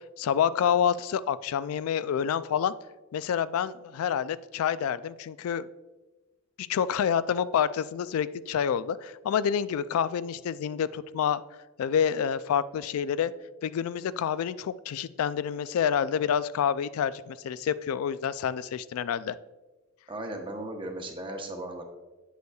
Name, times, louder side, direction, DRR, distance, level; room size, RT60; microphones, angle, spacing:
voice 1, 0.0-2.7 3.1-5.7 6.6-11.4 11.8-13.3 13.6-19.4, left 8 dB, 85° left, 16 dB, 0.3 m, -28 dB
voice 2, 20.1-21.8, right 1 dB, 25° right, 3 dB, 0.8 m, -36 dB
8.1 x 7.9 x 2.3 m, 1.2 s
head